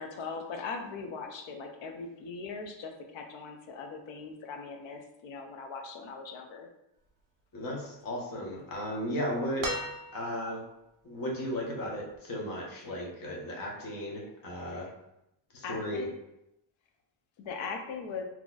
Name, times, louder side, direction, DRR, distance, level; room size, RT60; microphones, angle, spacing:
voice 1, 0.0-6.7 14.7-14.8 15.6-16.1 17.4-18.2, left 4 dB, 70° left, 4 dB, 0.7 m, -40 dB
voice 2, 7.5-9.7 10.1-10.6 11.0-14.9 15.5-16.1, equal, 45° left, -2 dB, 1.1 m, -35 dB
sound 1, 9.6-10.6 12.1-12.2, right 1 dB, 40° right, 0.8 m, -36 dB
3.8 x 2.9 x 2.4 m, 0.85 s
cardioid pair, 110°, 48 cm